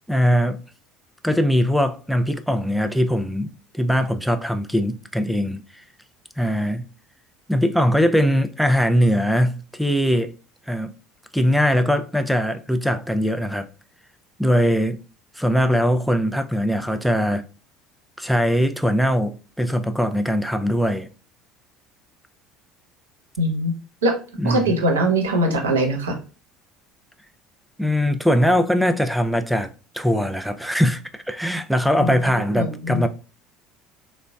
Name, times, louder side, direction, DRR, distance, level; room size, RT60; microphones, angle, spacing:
voice 1, 0.1-0.6 1.2-5.8 6.4-6.9 7.5-10.3 10.7-10.9 11.3-13.7 14.4-15.0 15.4-17.5 18.2-21.1 24.4-24.8 27.8-33.1, equal, ahead, 0.4 m, -21 dB
voice 2, 23.4-23.7 24.0-24.2 24.4-26.2 32.0-33.0, right 1 dB, 80° right, 0.7 m, -22 dB
3.9 x 2.1 x 2.3 m
figure-of-eight pair, 65°, 0 cm